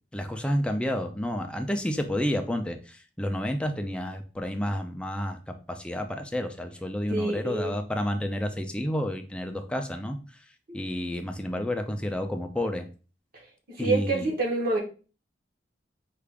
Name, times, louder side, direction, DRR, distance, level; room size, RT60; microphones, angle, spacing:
voice 1, 0.1-10.2 10.7-12.9 13.8-14.3, equal, 5° left, 5 dB, 0.4 m, -30 dB
voice 2, 7.1-7.8 10.7-10.8 13.8-14.8, right 3 dB, 55° right, -1 dB, 1.4 m, -27 dB
4.7 x 2.5 x 3.4 m, 0.35 s
head